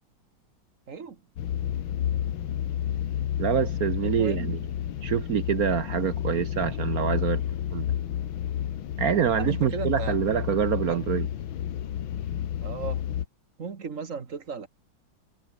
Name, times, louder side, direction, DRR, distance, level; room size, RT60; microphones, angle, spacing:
voice 1, 0.9-1.2 4.0-4.6 9.3-10.2 10.9-11.0 12.6-13.0 13.6-14.7, right 5 dB, 40° right, 1.9 m, -36 dB
sound 1, 1.4-13.2, left 10 dB, 75° left, 1.9 m, -30 dB
voice 2, 3.4-4.6 5.0-7.4 7.7-7.9 9.0-11.3, right 9 dB, 60° right, 1.0 m, -26 dB
omnidirectional pair, 2.3 m